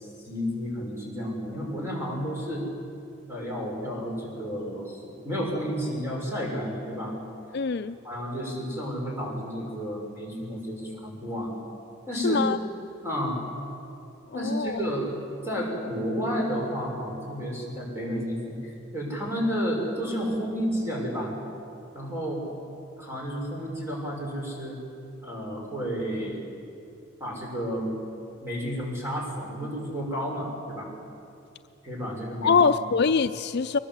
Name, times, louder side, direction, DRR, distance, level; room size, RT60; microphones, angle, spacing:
voice 1, 0.0-2.6 3.3-7.1 8.0-11.5 12.1-12.4 13.0-13.4 14.3-15.1 15.4-21.3 21.9-22.5 23.0-24.8 25.2-26.4 27.2-27.9 28.4-30.9 31.8-32.5, equal, 15° right, -2 dB, 6.2 m, -31 dB
voice 2, 7.5-8.0 12.2-12.6 14.3-14.8 32.4-33.8, left 5 dB, 55° left, 10 dB, 0.5 m, -24 dB
23.5 x 20.5 x 8.1 m, 2.6 s
head